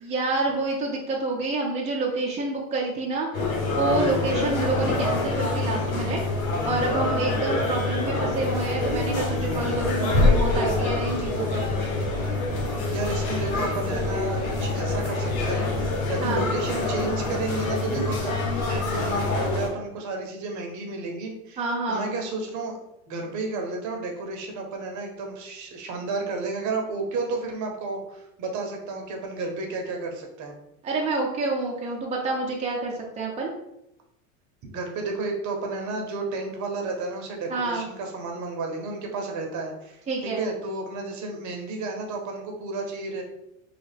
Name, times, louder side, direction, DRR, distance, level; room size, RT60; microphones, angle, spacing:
voice 1, 0.0-3.4 3.7-6.2 6.6-11.8 16.2-16.5 21.6-22.1 30.8-33.5 37.5-37.8 40.1-40.4, right 3 dB, 15° right, -2 dB, 0.6 m, -28 dB
sound 1, 3.3-19.7, left 2 dB, 75° left, 1.0 m, -26 dB
voice 2, 4.2-4.6 12.9-21.6 21.9-22.8 23.1-30.5 34.6-43.2, right 3 dB, 45° right, 2 dB, 0.8 m, -32 dB
sound 2, 8.8-16.0, right 1 dB, 55° left, 1.4 m, -37 dB
3.2 x 2.3 x 3.3 m, 0.85 s
hypercardioid pair, 95°, 42 cm